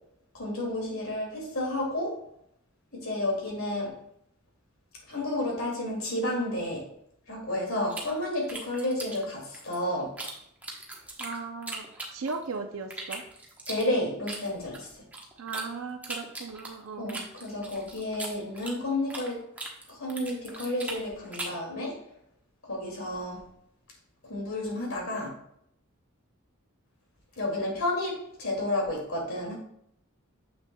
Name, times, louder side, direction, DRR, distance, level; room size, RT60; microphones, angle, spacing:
voice 1, 0.3-2.2 2.9-3.9 5.1-6.8 7.3-10.1 13.7-14.9 17.0-19.4 19.9-22.0 22.7-23.4 24.3-25.3 27.4-29.5, left 1 dB, 75° left, -1 dB, 2.3 m, -31 dB
sound 1, 7.9-10.3 10.6-12.5 12.9-15.7 16.0-19.3 19.6-21.6, right 2 dB, 5° right, 1.0 m, -39 dB
voice 2, 11.2-11.9 12.1-13.2 15.4-17.3, right 4 dB, 75° right, 5 dB, 0.5 m, -37 dB
7.1 x 6.2 x 2.3 m, 0.71 s
head